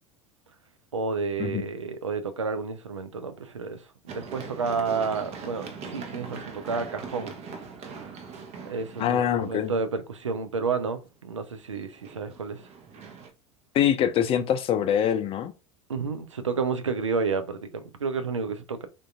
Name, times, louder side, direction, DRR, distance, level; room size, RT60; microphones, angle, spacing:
voice 1, 0.9-7.3 7.9-8.1 8.6-12.6 15.9-18.9, right 4 dB, 90° right, 0.4 m, -30 dB
Run, 4.1-9.9 11.8-13.3, right 5 dB, 45° right, 0.8 m, -41 dB
voice 2, 9.0-9.7 13.7-15.5, left 9 dB, 40° left, 0.5 m, -24 dB
3.6 x 2.6 x 2.3 m
figure-of-eight pair, 75°, 15 cm